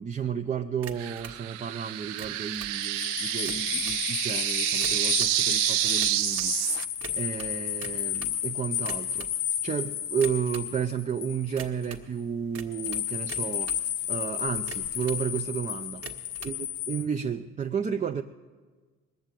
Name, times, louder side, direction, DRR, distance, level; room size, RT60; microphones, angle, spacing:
voice 1, 0.0-6.5 7.2-9.3 9.6-16.1 16.4-16.6 16.9-18.2, right 7 dB, 25° right, 5 dB, 0.4 m, -32 dB
sound 1, 0.8-1.4 2.0-2.8 3.3-4.0 4.7-5.4 6.0-6.5 7.0-8.4 8.8-9.4 10.1-10.7 11.6-12.1 12.5-13.8 14.5-15.2 15.9-16.6, right 6 dB, 45° right, 1.4 m, -43 dB
sound 2, 1.0-6.9, right 15 dB, 80° right, 0.5 m, -28 dB
sound 3, 2.6-11.8 12.7-17.1, left 11 dB, 65° left, 0.7 m, -32 dB
20.0 x 7.2 x 9.0 m, 1.4 s
cardioid pair, 95°, 32 cm